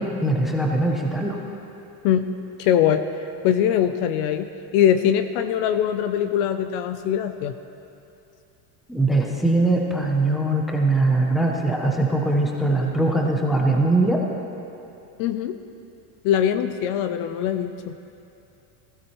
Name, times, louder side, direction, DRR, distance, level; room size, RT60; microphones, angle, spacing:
voice 1, 0.0-1.4 8.9-14.2, right 2 dB, ahead, 0 dB, 0.5 m, -21 dB
voice 2, 2.6-3.0 3.4-4.5 4.7-7.5 15.2-15.5 16.2-17.9, left 9 dB, 50° left, 10 dB, 0.5 m, -22 dB
19.0 x 15.5 x 3.0 m, 2.8 s
cardioid pair, 170°, 47 cm